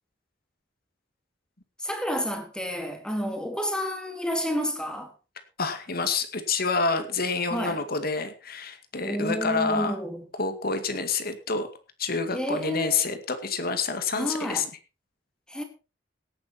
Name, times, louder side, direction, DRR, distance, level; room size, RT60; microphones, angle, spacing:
voice 1, 1.8-5.1 7.5-7.8 9.0-10.3 12.3-13.0 14.1-14.7 15.5-15.6, equal, 5° left, 3.0 m, -30 dB
voice 2, 5.6-9.9 10.4-11.7 12.0-14.6, left 4 dB, 55° left, 2.2 m, -28 dB
17.5 x 10.0 x 4.4 m
head